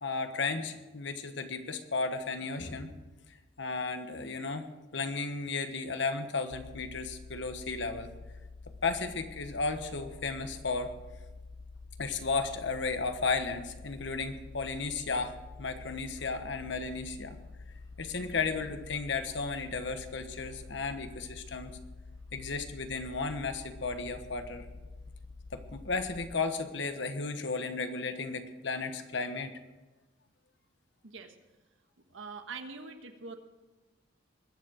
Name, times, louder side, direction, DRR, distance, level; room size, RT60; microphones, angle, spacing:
voice 1, 0.0-2.9 3.3-4.7 4.9-8.1 8.8-10.9 12.0-17.4 18.0-21.8 22.3-24.7 25.5-29.5, left 4 dB, 70° left, 8 dB, 1.3 m, -34 dB
sound 1, 6.5-26.4, left 3 dB, 25° left, 0.7 m, -48 dB
voice 2, 31.0-31.3 32.1-33.4, right 4 dB, 90° right, 6 dB, 1.5 m, -43 dB
21.5 x 7.3 x 6.4 m, 1.2 s
head